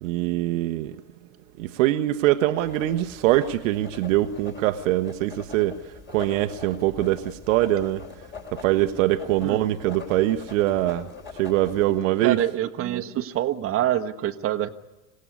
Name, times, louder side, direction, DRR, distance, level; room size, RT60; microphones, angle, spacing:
voice 1, 0.0-0.9 1.6-5.8 6.1-8.0 8.6-11.1 11.4-12.4, right 15 dB, 55° right, 1.0 m, -23 dB
Writing, 2.6-12.0, left 5 dB, 25° left, 3.6 m, -43 dB
voice 2, 12.2-14.7, right 12 dB, 30° right, 1.2 m, -26 dB
26.0 x 17.0 x 9.6 m
figure-of-eight pair, 90°, 47 cm